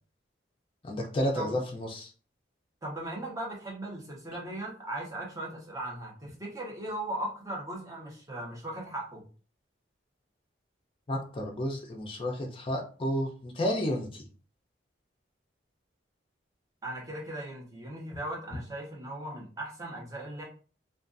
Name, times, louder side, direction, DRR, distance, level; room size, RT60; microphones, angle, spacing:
voice 1, 0.8-2.1 11.1-14.2, equal, 30° left, 0 dB, 0.4 m, -31 dB
voice 2, 2.8-9.2 16.8-20.4, right 1 dB, 20° right, -3 dB, 0.7 m, -38 dB
2.4 x 2.2 x 2.5 m, 0.40 s
head